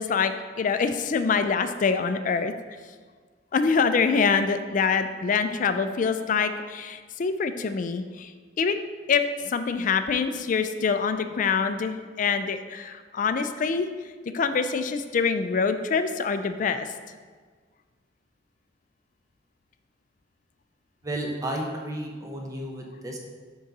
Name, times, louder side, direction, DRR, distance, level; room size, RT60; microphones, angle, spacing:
voice 1, 0.0-2.5 3.5-8.3 8.6-13.9 14.3-16.9, left 5 dB, 45° left, 9 dB, 0.4 m, -25 dB
voice 2, 21.0-23.2, right 1 dB, 20° right, 0 dB, 0.8 m, -32 dB
5.2 x 3.9 x 5.3 m, 1.5 s
head